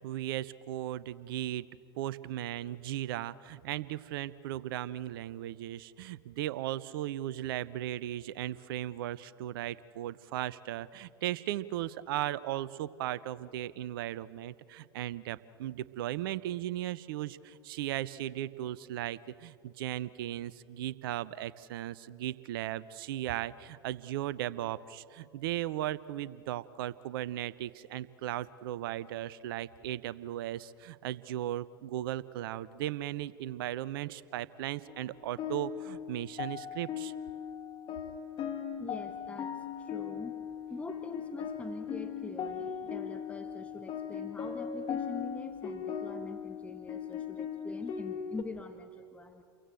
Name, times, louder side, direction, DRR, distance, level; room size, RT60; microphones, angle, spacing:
voice 1, 0.0-1.6 1.9-37.1, right 13 dB, 60° right, 19 dB, 0.8 m, -37 dB
sound 1, 34.9-48.4, left 8 dB, 40° left, 2.1 m, -39 dB
voice 2, 38.8-40.4 40.7-49.4, left 3 dB, 10° left, 7 dB, 1.5 m, -44 dB
29.5 x 23.0 x 7.8 m, 2.4 s
figure-of-eight pair, 85°, 13 cm